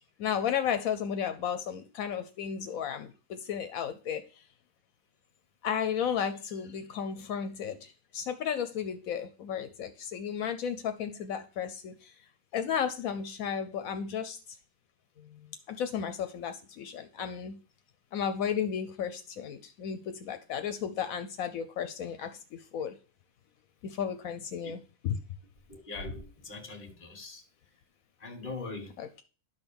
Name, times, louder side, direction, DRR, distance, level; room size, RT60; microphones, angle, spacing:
voice 1, 0.2-4.4 5.6-12.1 12.5-14.6 15.2-15.4 15.7-17.6 18.1-22.9 23.8-25.2 29.0-29.2, left 8 dB, 80° left, 1.1 m, -34 dB
voice 2, 25.7-27.4 28.2-28.9, left 3 dB, 35° left, 1.8 m, -41 dB
11.0 x 4.1 x 7.0 m
omnidirectional pair, 1.5 m